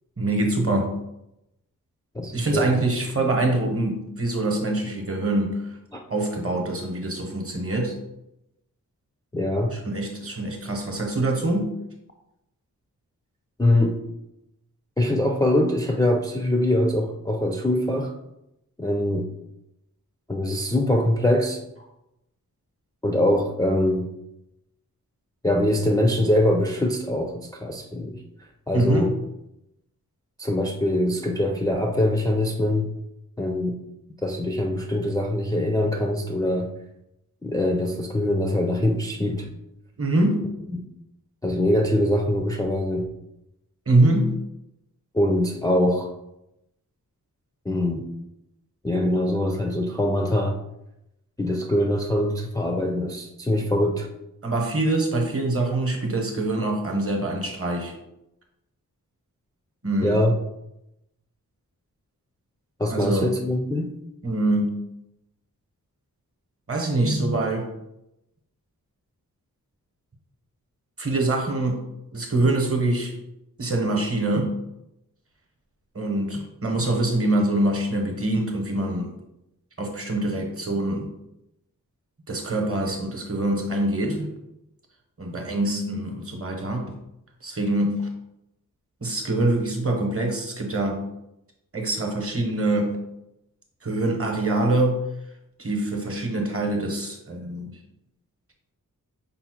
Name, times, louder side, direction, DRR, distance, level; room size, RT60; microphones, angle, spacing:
voice 1, 0.2-0.9 2.3-5.8 6.1-7.9 9.7-11.7 28.7-29.1 40.0-40.5 43.9-44.3 54.4-57.9 59.8-60.2 62.9-63.3 64.2-64.8 66.7-67.7 71.0-71.8 72.1-73.1 73.6-74.5 75.9-79.1 79.8-81.1 82.3-84.3 85.2-87.0 87.4-88.1 89.0-91.0 91.7-93.0 93.8-95.0 95.6-97.7, right 2 dB, 40° right, 2 dB, 0.9 m, -24 dB
voice 2, 2.1-2.7 5.9-6.0 9.3-9.8 13.6-14.0 15.0-18.1 18.8-19.3 20.3-21.6 23.0-24.1 25.4-28.2 28.7-29.1 30.4-32.9 33.4-33.8 34.2-36.7 37.4-39.5 40.7-40.8 41.4-43.1 45.1-46.1 47.7-48.1 48.8-50.6 51.4-54.1 60.0-60.3 62.8-63.9, left 1 dB, 10° left, 1 dB, 0.3 m, -23 dB
5.4 x 2.1 x 4.3 m, 0.86 s
wide cardioid pair, 105°, 35 cm